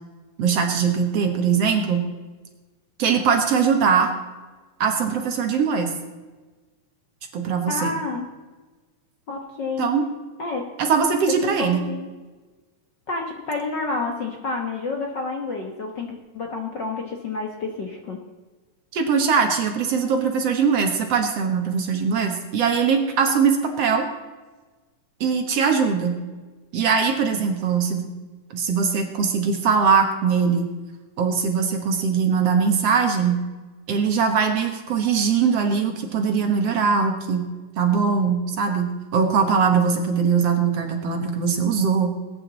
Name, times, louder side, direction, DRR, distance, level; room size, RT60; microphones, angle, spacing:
voice 1, 0.4-2.1 3.0-4.1 4.8-5.9 7.3-7.9 9.8-10.1 10.8-11.8 18.9-24.1 25.2-26.2 26.7-28.1 28.5-30.7 31.2-33.4 33.9-37.5 37.8-42.1, right 6 dB, 60° right, 4 dB, 2.2 m, -21 dB
voice 2, 7.7-8.2 9.3-9.9 10.4-10.7 11.4-12.1 13.1-18.2, left 3 dB, 50° left, 2 dB, 1.3 m, -29 dB
20.0 x 9.9 x 4.0 m, 1.3 s
omnidirectional pair, 3.6 m